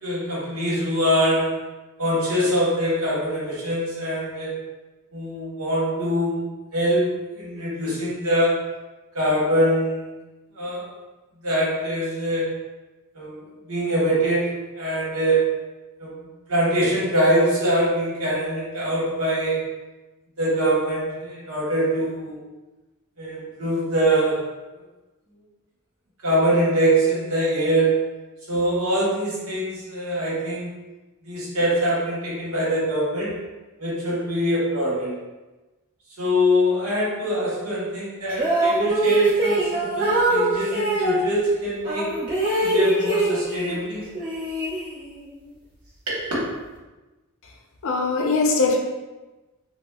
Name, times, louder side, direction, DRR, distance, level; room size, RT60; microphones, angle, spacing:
voice 1, 0.0-1.6 2.0-4.5 5.1-6.5 6.7-8.8 9.1-10.0 10.5-10.8 11.4-12.5 13.1-13.4 13.7-15.5 16.0-16.1 16.5-19.7 20.4-22.4 23.2-24.4 26.2-28.1 28.5-30.7 31.2-33.4 33.8-35.2 36.2-42.2 42.6-44.0 46.1-46.3, right 1 dB, 70° right, -7 dB, 1.2 m, -23 dB
sound 1, 38.3-41.2 41.8-43.8 44.1-45.2, right 2 dB, 40° right, 1.1 m, -23 dB
voice 2, 47.8-48.8, left 3 dB, 60° left, 1 dB, 0.5 m, -21 dB
4.2 x 2.0 x 2.2 m, 1.1 s
head